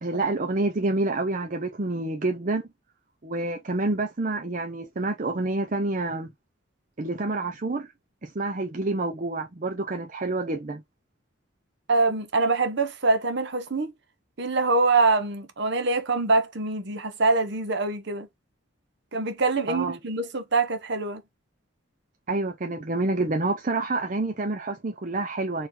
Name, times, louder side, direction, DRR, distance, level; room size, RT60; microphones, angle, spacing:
voice 1, 0.0-2.7 3.2-6.3 7.0-7.9 8.2-10.8 19.7-20.0 22.3-25.7, right 2 dB, 40° right, 0.6 m, -28 dB
voice 2, 11.9-13.9 14.4-18.3 19.1-21.2, right 3 dB, 55° right, 0.9 m, -24 dB
4.5 x 3.1 x 3.7 m
head